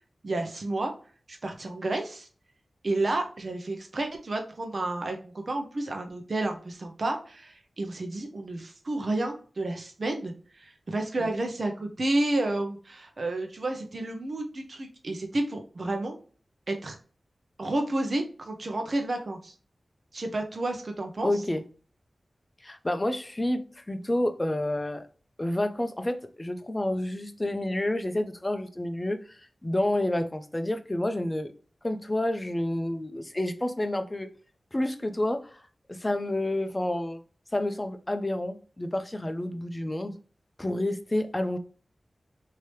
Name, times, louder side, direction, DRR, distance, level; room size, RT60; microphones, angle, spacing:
voice 1, 0.2-0.9 1.3-2.3 2.8-16.2 16.7-17.0 17.6-19.5 20.1-21.3, right 2 dB, 60° right, 0.7 m, -31 dB
voice 2, 21.2-21.6 22.6-25.0 25.4-31.5 31.8-34.3 34.7-35.6 35.9-37.2 37.5-40.1 40.6-41.6, left 1 dB, 25° left, 0.6 m, -29 dB
3.2 x 2.8 x 3.0 m
cardioid pair, 45°, 0 cm